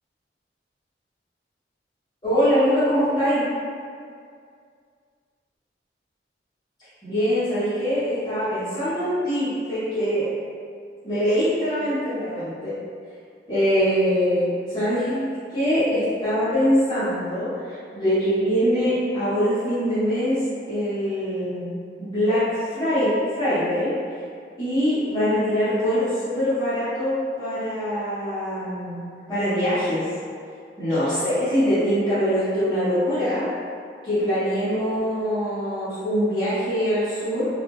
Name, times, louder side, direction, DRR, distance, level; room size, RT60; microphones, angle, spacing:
voice 1, 2.2-3.4 7.0-10.3 11.0-12.7 13.5-20.4 20.7-21.7 22.0-23.9 24.6-29.0 29.3-30.1 30.8-33.5 34.0-37.5, equal, 25° left, -16 dB, 0.9 m, -23 dB
2.3 x 2.3 x 3.0 m, 2.3 s
head